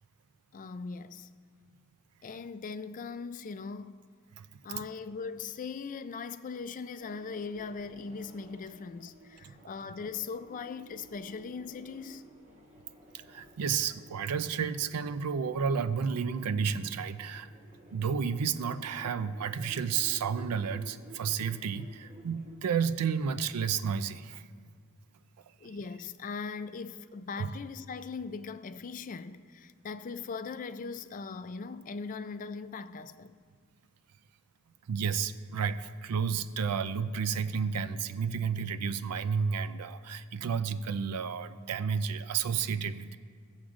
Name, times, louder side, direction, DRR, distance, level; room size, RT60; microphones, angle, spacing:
voice 1, 0.5-1.3 2.2-4.0 4.6-12.3 25.6-33.4, left 5 dB, 35° left, 0.4 m, -40 dB
sound 1, 7.0-22.9, right 2 dB, 30° right, 1.2 m, -55 dB
voice 2, 13.1-17.5 17.9-24.5 25.6-25.8 27.4-27.5 34.9-43.2, right 6 dB, 90° right, 0.4 m, -31 dB
18.0 x 7.2 x 2.5 m
head